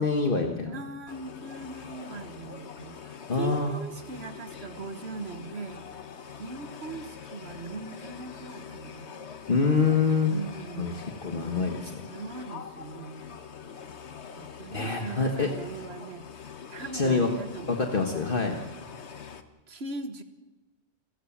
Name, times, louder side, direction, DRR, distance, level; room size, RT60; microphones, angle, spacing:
voice 1, 0.0-0.7 3.3-3.7 9.5-10.3 10.8-10.9 11.2-12.0 14.7-15.5 16.9-17.3 17.7-18.6, left 4 dB, 55° left, 3 dB, 1.5 m, -25 dB
voice 2, 0.6-5.8 6.4-9.2 10.3-11.2 12.1-13.4 14.3-16.3 16.7-17.8 19.7-20.2, right 4 dB, 70° right, 9 dB, 1.7 m, -40 dB
sound 1, 1.1-19.4, left 7 dB, 80° left, 1.5 m, -44 dB
28.0 x 14.5 x 7.3 m, 1.1 s
omnidirectional pair, 1.1 m